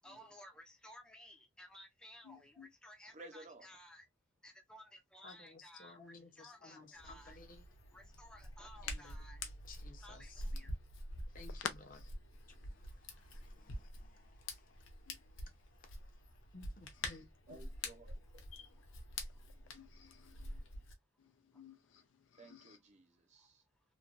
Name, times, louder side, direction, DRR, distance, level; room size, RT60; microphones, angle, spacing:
voice 1, 0.0-4.1 4.4-7.4 7.9-9.4 10.0-10.7, left 1 dB, 5° left, 0.5 m, -57 dB
voice 2, 2.2-2.7 11.6-11.7 15.1-15.2 18.5-18.8 19.7-20.5 21.2-22.1 22.3-22.8, left 8 dB, 70° left, 0.4 m, -48 dB
voice 3, 3.1-3.7 17.5-18.2 22.4-23.6, right 2 dB, 35° right, 0.7 m, -55 dB
voice 4, 5.2-7.7 8.7-10.6 11.3-17.6, left 3 dB, 45° left, 0.8 m, -59 dB
Hands, 6.9-20.9, left 1 dB, 85° left, 0.8 m, -47 dB
3.1 x 2.2 x 2.5 m
head